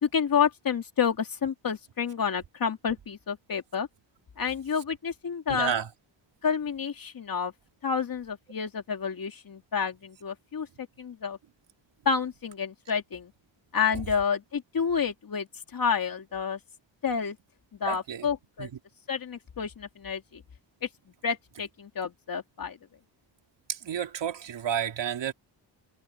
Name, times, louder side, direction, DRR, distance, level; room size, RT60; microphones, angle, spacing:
voice 1, 0.0-3.9 4.4-5.7 6.4-7.5 7.8-10.7 11.0-11.4 12.0-13.3 13.7-15.5 15.7-16.6 17.0-17.4 17.8-18.7 19.1-20.4 21.2-22.8, left 6 dB, 50° left, 2.6 m, -29 dB
voice 2, 5.5-5.9 17.8-18.3 18.6-18.7 23.7-25.3, right 8 dB, 70° right, 2.9 m, -31 dB
wide cardioid pair, 130°, 46 cm